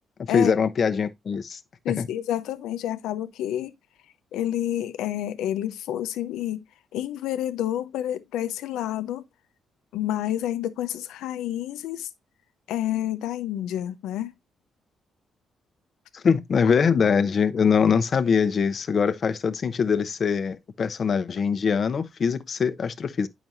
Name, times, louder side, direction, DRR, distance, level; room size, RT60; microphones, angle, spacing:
voice 1, 0.2-1.6 2.0-2.1 16.1-23.3, left 6 dB, 45° left, 0.8 m, -23 dB
voice 2, 1.8-3.7 4.3-6.6 6.9-9.3 9.9-12.1 12.7-14.3, left 12 dB, 90° left, 0.8 m, -29 dB
9.0 x 6.0 x 2.6 m
cardioid pair, 90°, 0 cm